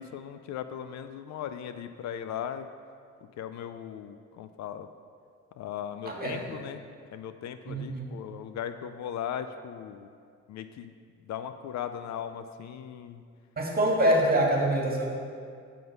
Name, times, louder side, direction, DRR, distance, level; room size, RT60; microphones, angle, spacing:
voice 1, 0.0-2.7 3.4-4.9 5.6-6.9 7.1-10.1 10.5-10.9 11.2-13.2, left 9 dB, 65° left, 9 dB, 0.5 m, -38 dB
voice 2, 6.0-6.6 7.7-8.1 13.6-15.1, right 1 dB, 30° right, -2 dB, 1.9 m, -25 dB
9.1 x 3.8 x 6.7 m, 2.2 s
cardioid pair, 90°, 30 cm